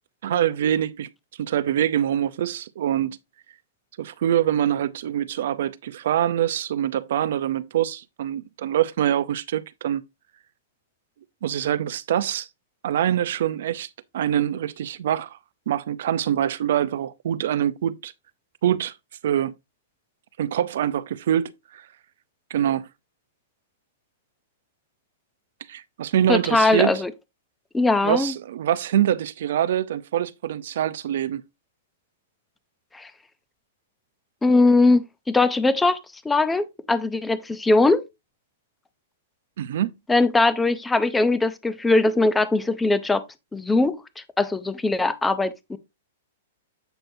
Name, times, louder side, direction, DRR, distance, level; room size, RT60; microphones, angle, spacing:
voice 1, 0.2-1.1 1.4-3.2 4.0-10.0 11.4-12.5 12.8-13.9 14.1-15.4 15.7-18.1 18.6-19.0 19.2-19.5 20.4-21.9 22.5-22.9 25.7-26.9 28.0-31.4 39.6-40.0, right 10 dB, 55° right, 0.5 m, -24 dB
voice 2, 26.3-27.1 27.7-28.3 32.9-33.1 34.4-36.0 36.2-38.1 40.1-43.2 43.5-45.8, left 2 dB, 5° left, 0.4 m, -20 dB
7.9 x 6.1 x 2.6 m
hypercardioid pair, 175°, 0 cm